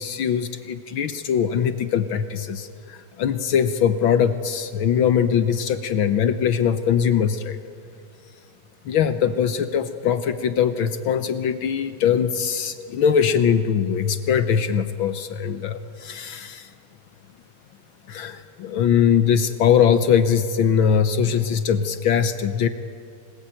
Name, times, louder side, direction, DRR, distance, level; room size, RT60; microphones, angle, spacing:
voice 1, 0.0-7.6 8.8-16.7 18.1-22.7, left 8 dB, 65° left, 10 dB, 1.3 m, -21 dB
29.0 x 19.0 x 9.2 m, 2.4 s
omnidirectional pair, 3.3 m